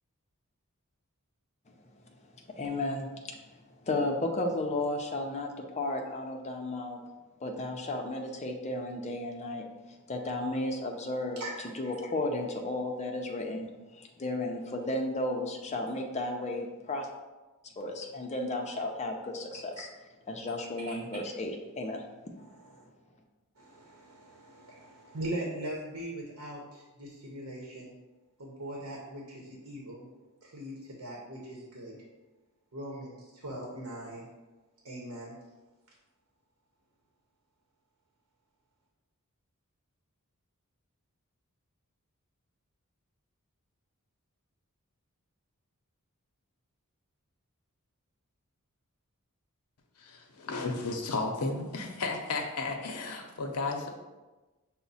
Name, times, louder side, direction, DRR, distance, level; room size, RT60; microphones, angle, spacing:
voice 1, 2.5-3.5 3.8-7.0 7.4-9.6 10.1-17.1 17.8-19.9 20.3-22.0, left 2 dB, 30° left, 1 dB, 0.5 m, -34 dB
voice 2, 22.4-22.8 23.6-28.0 28.4-30.1 30.4-32.0 32.7-34.3 34.8-35.4, right 1 dB, 75° right, -2 dB, 0.8 m, -41 dB
voice 3, 50.0-53.9, left 3 dB, 85° left, 3 dB, 0.7 m, -33 dB
5.8 x 2.1 x 4.0 m, 1.2 s
head